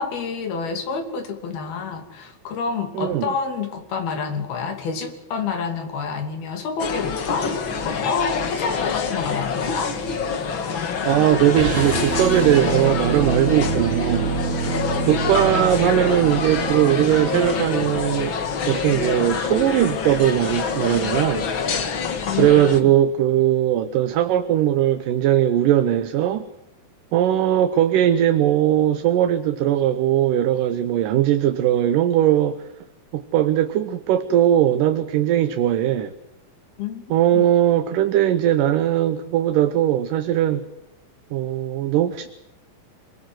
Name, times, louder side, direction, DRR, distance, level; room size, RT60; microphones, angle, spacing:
voice 1, 0.0-7.5 7.8-10.0 22.3-23.0 36.8-37.0 37.3-37.5, left 5 dB, 80° left, 6 dB, 4.8 m, -28 dB
voice 2, 3.0-3.3 11.1-14.3 15.1-21.5 22.4-26.5 27.1-32.7 33.1-36.1 37.1-40.6 41.3-42.3, right 11 dB, 70° right, 10 dB, 2.4 m, -19 dB
sound 1, 6.8-22.8, left 5 dB, 45° left, 1.8 m, -26 dB
sound 2, 11.5-17.7, right 5 dB, 85° right, 4.2 m, -26 dB
27.0 x 21.0 x 7.9 m, 0.88 s
omnidirectional pair, 4.3 m